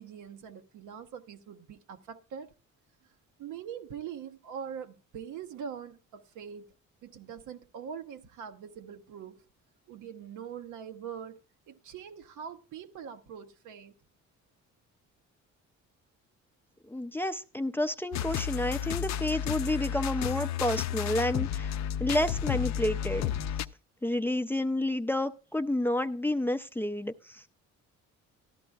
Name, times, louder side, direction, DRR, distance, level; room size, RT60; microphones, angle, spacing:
voice 1, 0.0-2.5 3.4-6.7 7.0-9.4 9.9-11.4 11.7-14.0, right 7 dB, 85° right, 0.9 m, -43 dB
voice 2, 16.9-21.7 22.0-23.3 24.0-27.5, left 1 dB, 5° left, 0.4 m, -30 dB
sound 1, 18.1-23.7, left 10 dB, 65° left, 0.5 m, -32 dB
13.5 x 11.5 x 2.3 m
cardioid pair, 90°, 30 cm